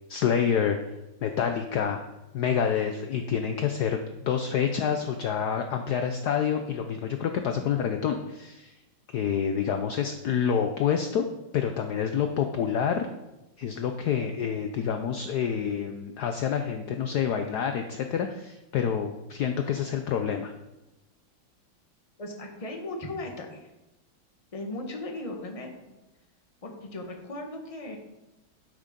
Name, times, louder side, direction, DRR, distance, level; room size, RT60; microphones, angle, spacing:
voice 1, 0.1-0.8 1.2-2.0 2.3-8.7 9.1-11.3 11.5-13.1 13.6-20.5, left 7 dB, 65° left, 6 dB, 1.1 m, -27 dB
voice 2, 22.2-23.7 24.5-25.7 26.6-28.0, left 2 dB, 20° left, 2 dB, 1.2 m, -37 dB
12.0 x 6.3 x 5.2 m, 0.99 s
omnidirectional pair, 2.2 m